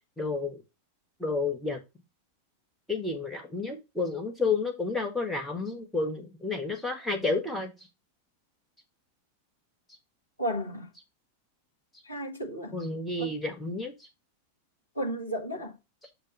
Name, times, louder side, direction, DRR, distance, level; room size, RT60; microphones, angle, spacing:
voice 1, 0.2-0.6 1.2-1.8 2.9-7.7 12.7-13.9, left 3 dB, 5° left, 1.7 m, -30 dB
voice 2, 10.4-10.9 12.1-12.7 13.2-13.3 15.0-15.7, equal, 85° left, 1.8 m, -33 dB
6.8 x 5.2 x 3.3 m
figure-of-eight pair, 90°, 0 cm